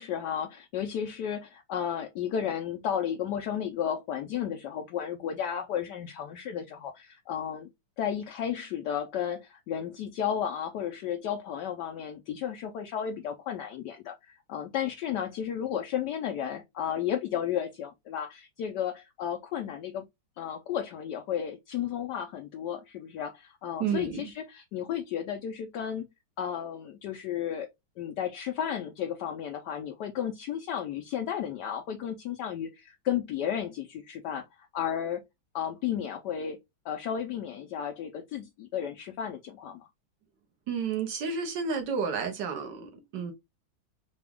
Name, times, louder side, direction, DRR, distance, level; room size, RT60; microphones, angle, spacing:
voice 1, 0.0-7.7 8.0-20.1 20.4-26.1 26.4-27.7 28.0-35.2 35.5-36.6 36.8-39.8, left 9 dB, 70° left, 1.1 m, -33 dB
voice 2, 23.8-24.3 40.7-43.3, right 6 dB, 70° right, 1.5 m, -31 dB
5.0 x 2.3 x 3.5 m
omnidirectional pair, 2.0 m